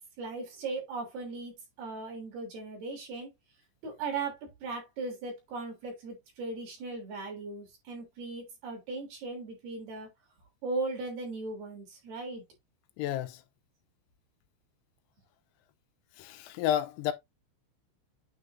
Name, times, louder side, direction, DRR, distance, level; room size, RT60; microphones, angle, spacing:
voice 1, 0.2-1.5 1.8-3.3 3.8-10.1 10.6-12.4, right 3 dB, 50° right, 4.8 m, -38 dB
voice 2, 13.0-13.4 16.2-17.1, left 11 dB, 85° left, 3.4 m, -31 dB
9.5 x 4.6 x 2.8 m
omnidirectional pair, 6.0 m